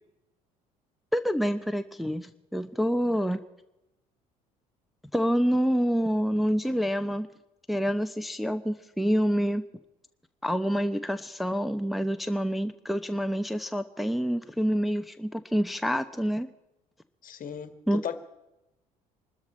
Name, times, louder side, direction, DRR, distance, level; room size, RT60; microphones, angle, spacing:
voice 1, 1.1-3.4 5.1-7.3 7.7-9.6 10.4-16.5 17.9-18.2, equal, ahead, 0.8 m, -27 dB
voice 2, 17.2-18.2, left 8 dB, 45° left, 1.7 m, -36 dB
24.0 x 13.0 x 4.4 m
hypercardioid pair, 60°, 19 cm